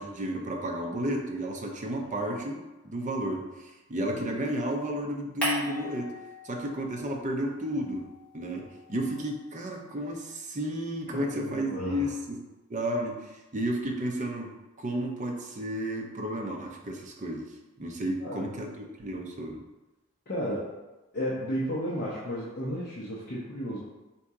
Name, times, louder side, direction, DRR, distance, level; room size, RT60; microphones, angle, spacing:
voice 1, 0.0-6.1 6.4-8.1 8.3-12.4 12.7-14.5 14.8-17.5 17.8-19.6, right 1 dB, 35° right, 1 dB, 0.6 m, -32 dB
sound 1, 5.4-7.1 7.4-9.8, equal, 5° left, 1.5 m, -38 dB
voice 2, 11.1-12.0 18.2-18.4 20.3-20.7 21.1-23.8, equal, 45° left, -7 dB, 0.7 m, -33 dB
4.5 x 2.8 x 3.6 m, 1.1 s
head